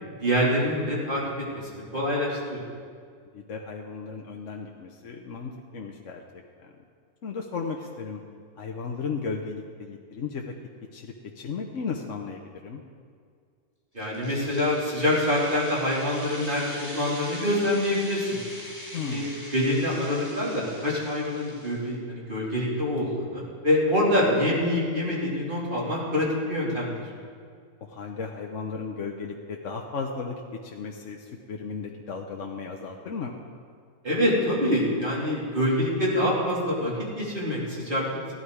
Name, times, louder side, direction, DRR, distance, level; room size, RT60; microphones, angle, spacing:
voice 1, 0.2-2.6 13.9-18.4 18.9-19.3 19.5-27.0 34.0-38.1, left 1 dB, 35° right, -6 dB, 3.4 m, -26 dB
voice 2, 3.3-6.7 7.2-8.2 8.6-10.5 10.9-12.8 18.9-19.4 27.8-30.4 30.6-31.2 31.5-33.3, left 5 dB, 60° left, 1 dB, 1.1 m, -35 dB
sound 1, 14.0-21.9, left 1 dB, 10° right, 3.0 m, -42 dB
15.5 x 11.5 x 4.8 m, 2.1 s
omnidirectional pair, 1.6 m